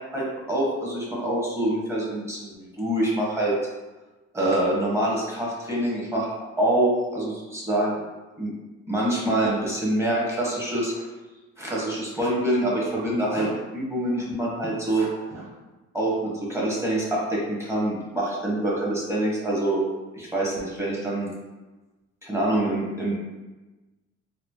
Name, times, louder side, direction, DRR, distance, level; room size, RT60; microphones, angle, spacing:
voice 1, 0.1-3.5 4.3-6.3 6.6-8.0 8.4-8.5 8.9-11.0 11.6-15.5 15.9-19.8 20.1-21.3 22.2-23.1, right 1 dB, 10° right, -5 dB, 1.1 m, -25 dB
4.1 x 2.0 x 2.9 m, 1.2 s
cardioid pair, 90°, 30 cm